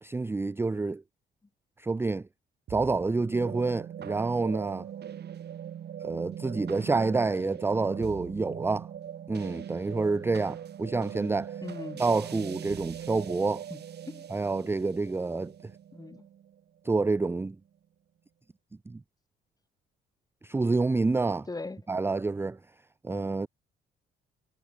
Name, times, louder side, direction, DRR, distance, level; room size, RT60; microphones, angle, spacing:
voice 1, 0.0-1.0 1.8-2.3 2.7-4.9 6.0-8.9 9.3-11.6 12.0-13.6 14.3-15.5 16.8-17.6 18.9-19.0 20.4-21.5 21.9-22.6 23.0-23.5, right 3 dB, 10° right, 0.4 m, -28 dB
sound 1, 2.7-17.1, right 9 dB, 55° right, 1.4 m, -41 dB
voice 2, 11.6-12.0 12.3-12.5 13.7-13.8 14.0-14.2 15.9-16.2 21.5-21.8, left 3 dB, 20° left, 1.8 m, -39 dB
cardioid pair, 90°, 20 cm